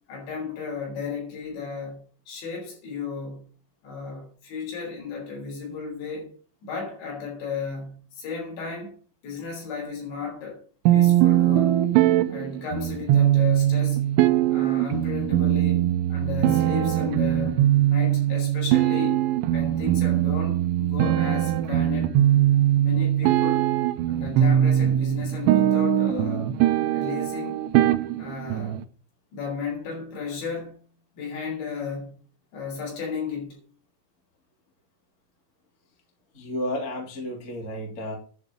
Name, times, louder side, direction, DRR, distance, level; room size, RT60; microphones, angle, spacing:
voice 1, 0.1-2.0 2.3-3.4 3.8-6.3 6.6-8.9 9.2-10.6 10.9-11.8 12.3-14.0 14.5-19.2 19.5-22.2 22.8-23.6 24.1-26.5 26.9-27.6 28.2-28.8 29.3-30.8 31.1-32.1 32.5-33.6, left 5 dB, 60° left, 6.5 m, -34 dB
sound 1, 10.9-28.8, right 12 dB, 80° right, 2.9 m, -21 dB
voice 2, 36.3-38.1, left 1 dB, 20° left, 2.6 m, -32 dB
11.0 x 5.4 x 7.6 m
omnidirectional pair, 5.9 m